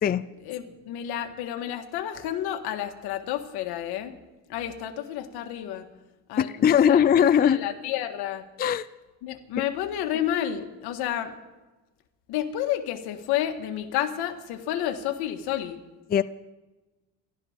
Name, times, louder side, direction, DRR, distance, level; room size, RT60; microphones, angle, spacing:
voice 1, 0.4-4.2 4.5-5.9 6.3-7.0 7.4-8.4 9.2-11.3 12.3-15.8, left 11 dB, 85° left, 5 dB, 1.9 m, -30 dB
voice 2, 6.4-7.6 8.6-8.9 16.1-16.2, left 8 dB, 25° left, 14 dB, 0.4 m, -20 dB
30.0 x 12.5 x 3.7 m, 1.2 s
cardioid pair, 110°, 37 cm